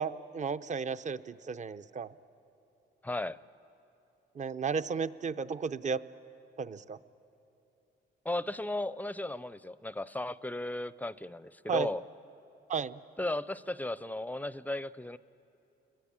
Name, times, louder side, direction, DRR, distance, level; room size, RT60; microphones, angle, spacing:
voice 1, 0.0-2.1 4.4-6.0 6.6-7.0 11.7-11.9 12.7-13.0, right 6 dB, 35° right, 13 dB, 0.7 m, -34 dB
voice 2, 3.0-3.4 8.2-12.0 13.2-15.2, left 1 dB, 10° left, 17 dB, 0.5 m, -35 dB
29.5 x 22.0 x 8.8 m, 3.0 s
cardioid pair, 90°, 20 cm